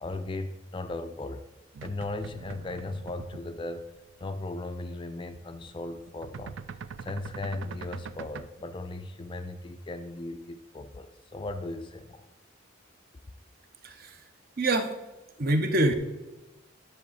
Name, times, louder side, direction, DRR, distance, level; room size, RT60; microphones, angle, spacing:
voice 1, 0.0-1.4 1.8-3.9 4.2-6.6 7.0-12.2, left 2 dB, 25° left, 9 dB, 0.3 m, -37 dB
sound 1, 1.7-3.6 4.0-4.3 4.5-4.8 5.0-8.5, right 6 dB, 65° right, 0.4 m, -43 dB
voice 2, 13.8-14.2 14.6-14.9 15.4-15.9, right 1 dB, 45° right, 7 dB, 0.8 m, -25 dB
10.5 x 6.4 x 4.1 m, 1.1 s
head